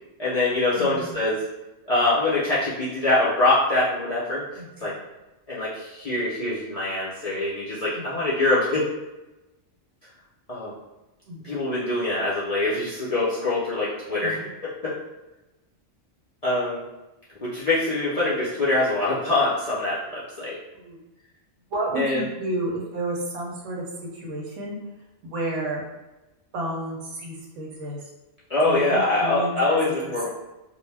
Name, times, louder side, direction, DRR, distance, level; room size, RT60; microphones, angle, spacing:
voice 1, 0.2-1.4 1.9-4.5 4.8-4.9 5.5-8.9 10.5-10.8 11.4-14.4 14.8-14.9 16.4-16.8 17.4-20.6 22.0-22.2 28.5-30.3, left 2 dB, 50° left, -9 dB, 0.4 m, -24 dB
voice 2, 0.8-1.2 4.6-4.9 7.9-8.3 11.3-11.5 14.2-14.5 20.7-21.0 21.7-23.9 24.1-24.8 25.2-25.8 26.5-28.1 28.6-29.9, right 1 dB, 85° right, -2 dB, 1.0 m, -31 dB
2.3 x 2.1 x 3.2 m, 1.0 s
omnidirectional pair, 1.2 m